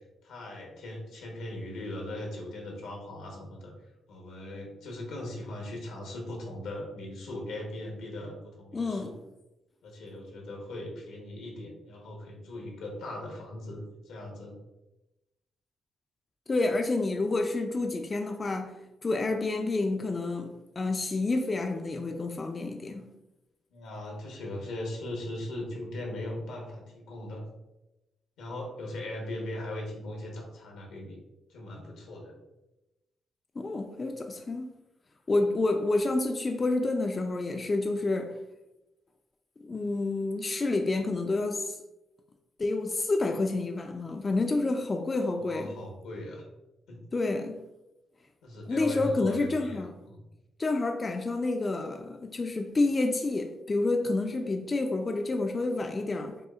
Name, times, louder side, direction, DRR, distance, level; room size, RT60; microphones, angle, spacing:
voice 1, 0.2-3.7 4.1-9.1 9.8-14.6 23.7-27.4 28.4-31.2 31.5-32.3 45.4-46.4 46.9-47.0 48.4-49.8 50.1-50.2, left 1 dB, 90° left, 1.0 m, -39 dB
voice 2, 8.7-9.1 16.5-20.5 20.8-23.1 33.6-34.7 35.3-38.3 39.6-41.8 42.6-45.8 47.1-47.6 48.7-49.9 50.6-56.4, left 2 dB, 35° left, 0.3 m, -29 dB
5.5 x 2.0 x 2.3 m
supercardioid pair, 65°, 0 cm